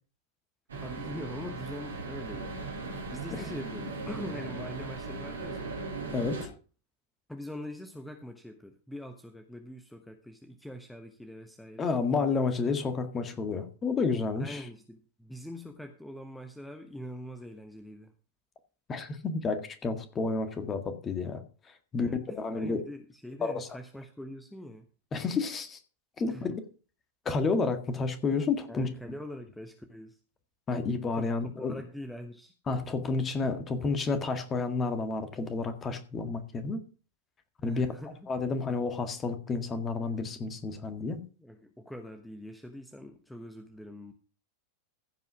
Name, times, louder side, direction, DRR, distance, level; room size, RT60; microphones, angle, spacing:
sound 1, 0.7-6.5, right 3 dB, 70° right, 3.1 m, -38 dB
voice 1, 0.8-2.5 3.1-5.8 7.3-11.9 14.4-18.1 21.9-24.9 26.3-26.6 28.7-30.2 31.1-31.3 31.6-32.5 37.6-38.3 41.4-44.1, equal, 5° left, 6 dB, 1.1 m, -43 dB
voice 2, 6.1-6.5 11.8-14.7 18.9-22.1 22.4-22.8 23.4-23.7 25.1-25.8 26.2-26.6 27.3-28.9 30.7-31.8 32.7-36.8 37.6-37.9 38.3-41.2, left 4 dB, 20° left, 8 dB, 1.8 m, -30 dB
15.5 x 5.5 x 6.1 m, 0.37 s
figure-of-eight pair, 90°, 0 cm